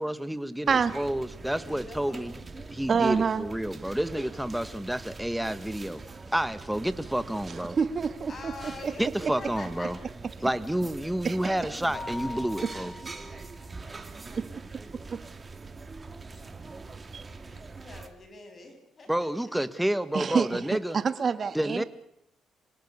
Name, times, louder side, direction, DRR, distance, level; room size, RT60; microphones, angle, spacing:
voice 1, 0.0-2.4 2.7-6.0 6.3-7.8 9.0-10.0 10.4-12.9 19.1-21.0 21.5-21.8, right 1 dB, 5° right, 12 dB, 1.6 m, -29 dB
sound 1, 0.7-18.1, right 3 dB, 25° right, 2.8 m, -43 dB
voice 2, 0.7-1.1 2.9-3.4 7.5-8.9 11.2-11.5 12.6-12.7 14.3-14.5 15.1-15.2 17.1-17.2 20.1-20.6 20.9-21.8, right 6 dB, 45° right, 11 dB, 1.9 m, -27 dB
voice 3, 1.5-3.0 4.1-4.3 8.3-9.0 9.4-9.9 17.5-19.6, left 3 dB, 40° left, 6 dB, 7.4 m, -46 dB
Mallet percussion, 11.9-13.7, left 3 dB, 65° left, 5.6 m, -41 dB
26.5 x 18.0 x 8.4 m, 0.77 s
cardioid pair, 90°, 0 cm